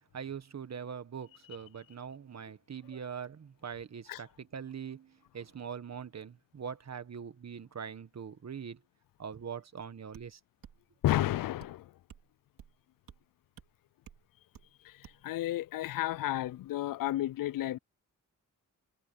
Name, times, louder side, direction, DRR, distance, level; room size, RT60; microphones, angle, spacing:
voice 1, 0.1-8.8 9.2-10.4, right 7 dB, 50° right, 1.5 m, -42 dB
sound 1, 10.1-10.3 10.6-10.8 11.1-11.3 11.6-11.8 12.1-12.3 12.6-12.8 13.1-13.2 13.6-13.7 14.1-14.2 14.5-14.7 15.0-15.2, right 9 dB, 85° right, 2.7 m, -53 dB
voice 2, 11.0-11.9 14.8-17.8, left 14 dB, 75° left, 0.5 m, -32 dB
cardioid pair, 70°, 33 cm